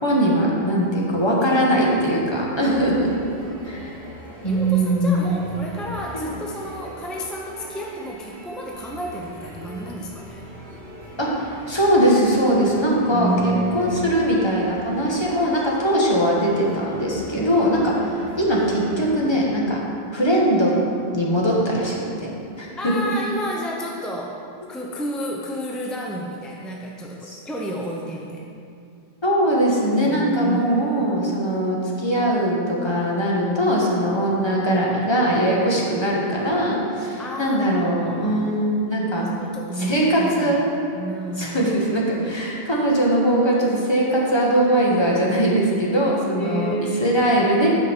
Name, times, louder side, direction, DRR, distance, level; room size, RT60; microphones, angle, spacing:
voice 1, 0.0-3.1 3.6-3.9 4.4-5.3 6.1-6.3 11.2-19.8 20.1-20.7 21.1-22.3 22.6-22.9 27.3-27.4 29.2-39.3 39.8-40.7 41.4-46.7 47.0-47.7, right 1 dB, 25° left, -4 dB, 1.2 m, -21 dB
sound 1, 2.6-19.2, right 1 dB, 80° right, 1.6 m, -40 dB
voice 2, 4.4-10.4 13.1-14.6 17.4-17.6 18.0-18.4 22.7-24.4 24.7-28.5 30.0-31.2 37.2-38.7 39.2-40.6 41.0-41.7 46.3-47.2, right 1 dB, ahead, -2 dB, 0.3 m, -31 dB
8.6 x 5.2 x 4.4 m, 2.5 s
omnidirectional pair, 1.1 m